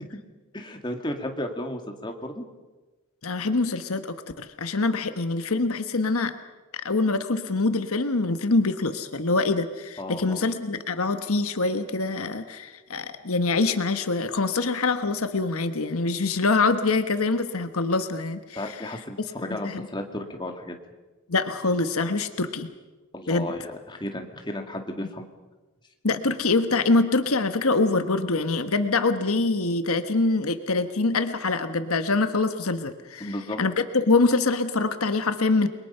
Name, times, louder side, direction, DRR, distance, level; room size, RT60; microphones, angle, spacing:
voice 1, 0.5-2.5 10.0-10.4 18.6-20.8 23.1-25.3 33.2-33.6, left 1 dB, 20° left, 3 dB, 2.2 m, -34 dB
voice 2, 3.2-6.3 6.7-19.0 19.4-19.9 21.3-22.7 23.3-23.5 26.0-35.7, left 3 dB, 75° left, 9 dB, 1.3 m, -25 dB
29.5 x 22.5 x 5.7 m, 1.2 s
head